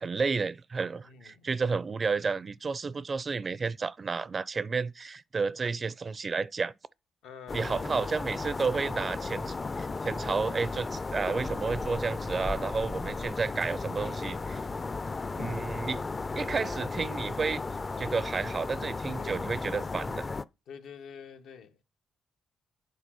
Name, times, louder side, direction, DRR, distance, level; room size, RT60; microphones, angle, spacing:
voice 1, 0.0-6.7 7.5-14.6 15.4-16.0 16.4-17.6 18.0-20.3, right 4 dB, 40° right, 0.4 m, -31 dB
voice 2, 1.0-1.5 7.2-7.8 19.2-19.4 20.7-21.8, left 7 dB, 85° left, 1.0 m, -47 dB
sound 1, 7.5-20.4, left 3 dB, 30° left, 0.4 m, -35 dB
8.4 x 3.9 x 6.1 m
cardioid pair, 85°, 0 cm